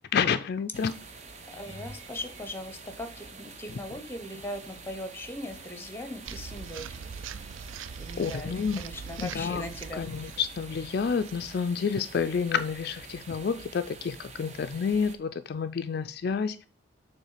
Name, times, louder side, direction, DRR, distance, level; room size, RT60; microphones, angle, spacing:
voice 1, 0.1-1.0 3.7-3.8 8.2-8.8 9.2-9.6 9.9-16.6, left 6 dB, 55° left, 0.3 m, -29 dB
sound 1, 0.7-15.2, right 4 dB, 35° right, 0.7 m, -47 dB
voice 2, 1.5-7.0 8.0-8.5 8.8-10.1, left 1 dB, 10° left, 0.8 m, -39 dB
sound 2, 1.5-3.8 4.5-4.9 5.3-5.4 9.8-9.9, equal, 70° right, 1.6 m, -52 dB
sound 3, 6.2-12.4, right 6 dB, 90° right, 0.4 m, -43 dB
7.3 x 3.2 x 5.6 m
head